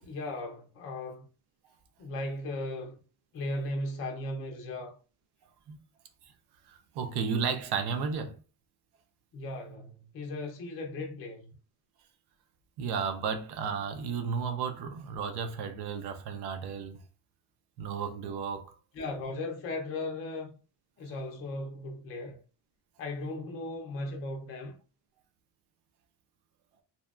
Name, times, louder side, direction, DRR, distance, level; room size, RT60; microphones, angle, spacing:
voice 1, 0.0-1.2 2.0-3.0 3.3-4.9 9.3-11.5 19.0-20.6 21.0-22.4 23.0-24.8, left 2 dB, 35° left, 0.4 m, -37 dB
voice 2, 6.7-8.4 12.8-17.0 17.8-18.8, right 6 dB, 80° right, 0.6 m, -33 dB
2.7 x 2.1 x 2.3 m
cardioid pair, 175°, 39 cm